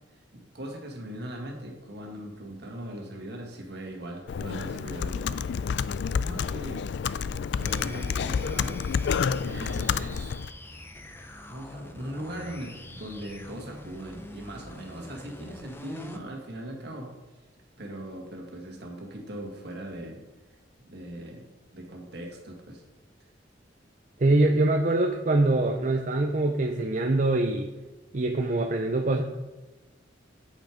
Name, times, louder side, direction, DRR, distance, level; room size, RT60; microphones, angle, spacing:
voice 1, 0.3-5.7 6.1-6.8 7.1-10.4 11.5-17.1 17.8-20.2 20.8-21.5 21.7-22.8, right 1 dB, 60° right, 1 dB, 1.9 m, -40 dB
Computer keyboard, 4.3-10.5, left 6 dB, 65° left, 0.3 m, -29 dB
sound 1, 7.6-16.3, left 1 dB, 10° left, 0.6 m, -45 dB
voice 2, 24.2-27.7 28.1-29.2, right 2 dB, 40° right, 3 dB, 0.6 m, -24 dB
8.5 x 6.5 x 5.0 m, 1.1 s
head